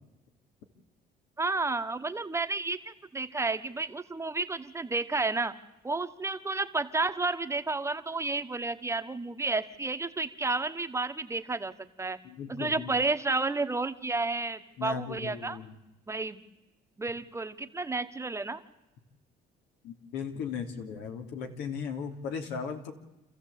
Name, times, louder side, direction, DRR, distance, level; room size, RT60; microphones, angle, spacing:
voice 1, 1.4-5.5 5.8-11.7 12.0-12.2 12.5-15.6 16.1-16.4 17.0-18.6, right 3 dB, 15° right, 9 dB, 1.2 m, -31 dB
voice 2, 12.2-12.9 14.8-15.7 19.8-22.9, left 6 dB, 90° left, 4 dB, 3.0 m, -37 dB
28.0 x 14.5 x 8.4 m, 1.0 s
cardioid pair, 110°, 17 cm